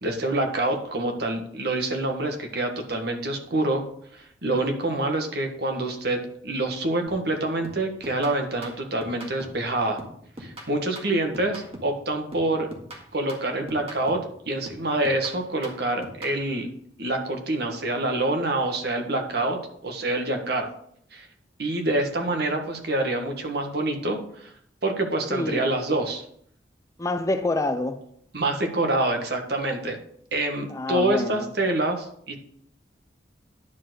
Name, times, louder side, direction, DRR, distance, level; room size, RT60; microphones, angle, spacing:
voice 1, 0.0-3.8 4.1-10.0 10.4-12.7 13.1-14.2 14.5-16.7 17.0-20.7 21.1-21.3 21.6-24.5 24.8-26.2 28.3-30.0 30.3-32.4, right 2 dB, 60° right, 1.6 m, -26 dB
sound 1, 7.1-7.3 7.6-9.7 10.0-12.0 12.3-14.4 14.7-16.4, equal, 30° right, 1.8 m, -42 dB
voice 2, 25.3-25.6 27.0-28.1 30.7-31.5, left 2 dB, 15° left, 0.5 m, -27 dB
10.5 x 4.7 x 6.2 m
head